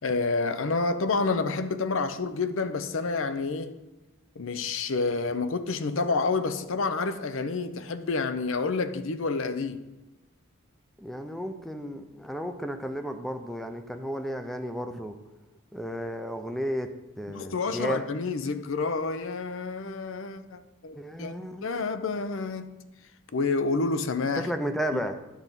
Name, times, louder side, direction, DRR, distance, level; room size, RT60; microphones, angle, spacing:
voice 1, 0.0-3.8 4.4-9.8 17.3-21.3 21.6-22.8 23.3-24.5 24.9-25.0, left 4 dB, 65° left, 0.6 m, -29 dB
voice 2, 11.0-15.2 15.7-16.9 17.2-18.0 21.0-21.7 24.4-25.2, equal, ahead, 0.5 m, -33 dB
10.0 x 4.0 x 7.4 m
head